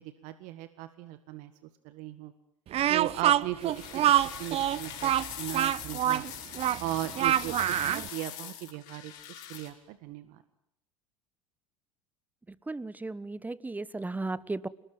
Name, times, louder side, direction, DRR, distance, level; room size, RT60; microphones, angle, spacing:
voice 1, 0.0-1.5 1.8-2.3 2.9-4.1 4.4-6.2 6.8-10.4, right 15 dB, 55° right, 11 dB, 1.7 m, -38 dB
Speech, 2.7-8.1, right 12 dB, 40° right, 1.0 m, -26 dB
sound 1, 3.6-9.7, left 11 dB, 55° left, 6.0 m, -42 dB
voice 2, 12.7-14.7, right 2 dB, 10° right, 19 dB, 1.3 m, -35 dB
29.0 x 20.0 x 9.5 m, 0.77 s
figure-of-eight pair, 75°, 16 cm